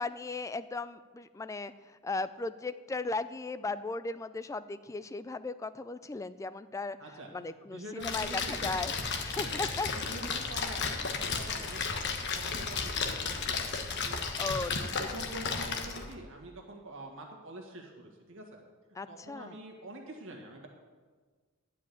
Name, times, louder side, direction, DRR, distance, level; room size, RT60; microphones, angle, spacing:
voice 1, 0.0-8.9 9.2-9.9 14.4-15.2 19.0-19.6, left 3 dB, 15° left, 13 dB, 0.3 m, -37 dB
voice 2, 7.0-8.6 9.4-14.2 14.7-18.6 19.1-20.7, right 1 dB, 65° right, 1 dB, 1.8 m, -46 dB
Splash splatter, 8.0-16.1, left 5 dB, 55° left, 1.1 m, -34 dB
11.5 x 5.1 x 8.5 m, 1.5 s
head